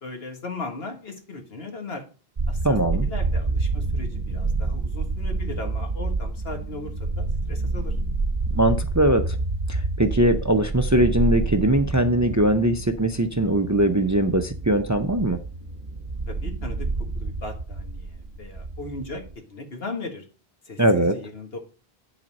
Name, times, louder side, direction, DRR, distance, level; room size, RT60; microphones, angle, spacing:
voice 1, 0.0-2.0 2.5-2.8 3.0-7.9 16.3-16.9 17.1-19.2 19.5-20.2 20.7-21.6, left 3 dB, 75° left, 3 dB, 1.9 m, -37 dB
sound 1, 2.4-19.3, right 3 dB, 40° right, 1.0 m, -28 dB
voice 2, 2.6-3.1 8.5-9.4 9.7-15.4 20.8-21.2, right 1 dB, 20° right, 7 dB, 0.6 m, -21 dB
10.5 x 4.1 x 5.3 m, 0.37 s
omnidirectional pair, 1.0 m